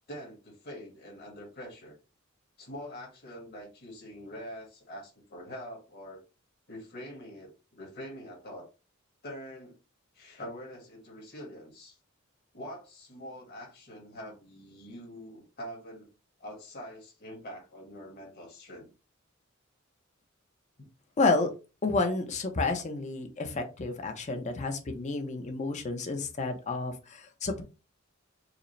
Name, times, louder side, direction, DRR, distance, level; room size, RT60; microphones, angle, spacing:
voice 1, 0.1-2.0 2.6-6.2 6.7-8.7 9.2-9.8 10.1-12.0 12.5-16.1 16.4-18.9 20.8-20.9, equal, 55° left, 1.6 m, -44 dB
voice 2, 21.2-21.5 21.8-27.6, left 3 dB, 35° left, 0.6 m, -30 dB
4.8 x 2.0 x 3.2 m
head